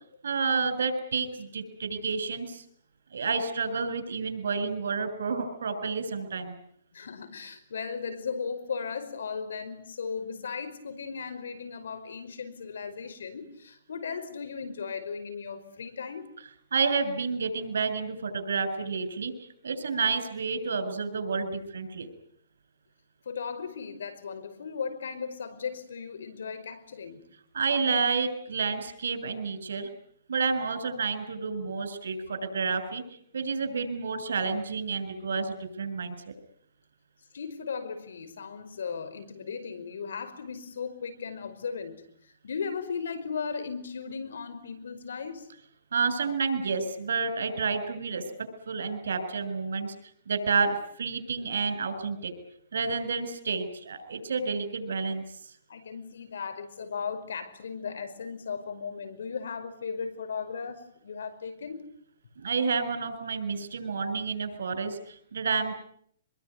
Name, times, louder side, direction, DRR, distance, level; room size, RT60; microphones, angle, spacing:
voice 1, 0.2-2.6 3.1-6.5 16.7-19.3 19.6-22.1 27.5-29.9 30.3-33.0 33.3-36.3 45.9-48.2 48.7-49.9 50.3-52.3 52.7-55.2 62.4-65.7, right 5 dB, 85° right, 10 dB, 7.0 m, -30 dB
voice 2, 6.9-16.3 23.2-27.2 37.3-45.5 55.7-61.9, left 6 dB, 85° left, 11 dB, 5.0 m, -36 dB
25.5 x 22.5 x 9.7 m, 0.67 s
hypercardioid pair, 155°, 0 cm